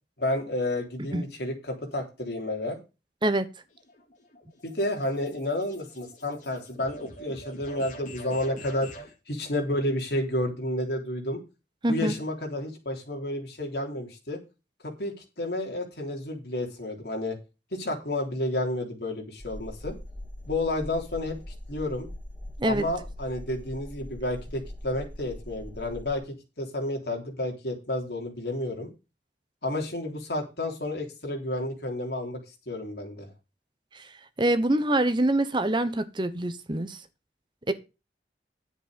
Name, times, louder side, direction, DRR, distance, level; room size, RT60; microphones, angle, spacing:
voice 1, 0.2-2.8 4.6-11.4 11.9-14.4 14.8-17.4 17.7-19.9 20.5-21.4 21.7-22.1 22.6-26.2 26.6-28.9 29.6-32.4 32.7-33.3, left 1 dB, 65° left, 3.6 m, -31 dB
sound 1, 3.7-9.1, equal, 45° left, 3.5 m, -46 dB
voice 2, 11.8-12.1 22.6-22.8 33.9-34.0 34.4-37.0 37.7-37.8, right 1 dB, 25° right, 0.9 m, -25 dB
sound 2, 19.4-26.2, left 1 dB, 15° left, 1.6 m, -41 dB
10.5 x 8.0 x 5.1 m
head